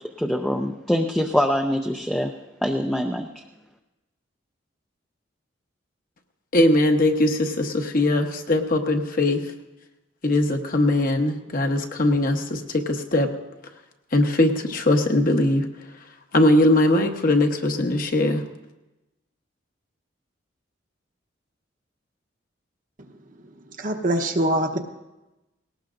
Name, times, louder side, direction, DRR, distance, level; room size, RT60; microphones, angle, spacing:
voice 1, 0.2-2.3 2.6-3.3, equal, 5° left, 2 dB, 0.5 m, -24 dB
voice 2, 6.5-9.4 10.2-13.3 14.1-15.7 16.3-18.4, left 1 dB, 50° left, 4 dB, 1.1 m, -20 dB
voice 3, 23.8-24.8, right 1 dB, 45° right, 4 dB, 1.0 m, -23 dB
19.0 x 18.0 x 2.6 m, 1.0 s
head